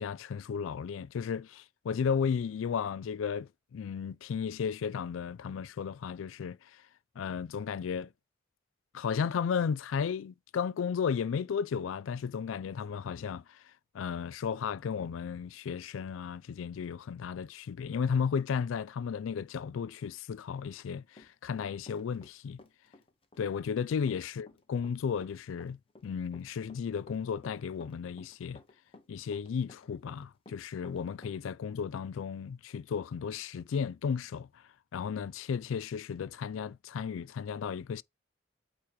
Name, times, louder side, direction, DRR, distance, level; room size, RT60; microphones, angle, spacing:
voice 1, 0.0-6.8 7.2-8.1 8.9-13.6 13.9-22.6 23.4-28.6 29.1-34.6 34.9-38.0, left 6 dB, 85° left, 0.3 m, -34 dB
Run, 20.7-22.3 22.6-31.4, left 2 dB, 30° left, 0.8 m, -56 dB
8.4 x 2.9 x 4.7 m
head